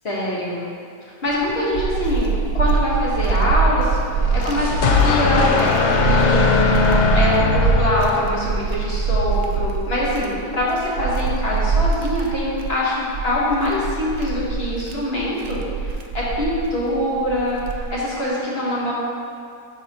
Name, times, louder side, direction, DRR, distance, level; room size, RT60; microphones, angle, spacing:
voice 1, 0.0-0.7 1.0-4.0 4.3-6.7 7.1-17.6 17.9-18.9, left 1 dB, 40° left, -6 dB, 1.3 m, -24 dB
sound 1, 1.3-18.1, right 5 dB, 90° right, 0.6 m, -24 dB
sound 2, 4.1-8.7, left 5 dB, 70° left, 0.6 m, -19 dB
10.0 x 4.2 x 2.8 m, 2.3 s
omnidirectional pair, 1.8 m